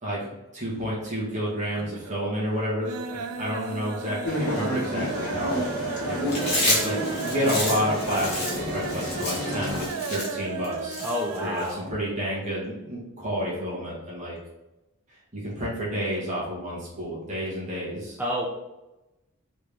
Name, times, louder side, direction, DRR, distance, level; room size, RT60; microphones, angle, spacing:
voice 1, 0.0-11.0 11.4-14.4 15.3-18.2, equal, 35° right, -6 dB, 1.3 m, -30 dB
sound 1, 0.8-1.4 1.7-2.2 2.5-11.6 11.9-12.0 12.3-12.4, right 5 dB, 85° right, 0.4 m, -36 dB
sound 2, 4.2-9.9, equal, 50° left, 1.1 m, -30 dB
Chewing mastication, 6.3-11.7, left 1 dB, 30° left, 1.4 m, -29 dB
voice 2, 11.0-11.9 18.2-18.5, equal, 10° right, -5 dB, 0.4 m, -29 dB
3.5 x 3.3 x 3.4 m, 0.98 s
head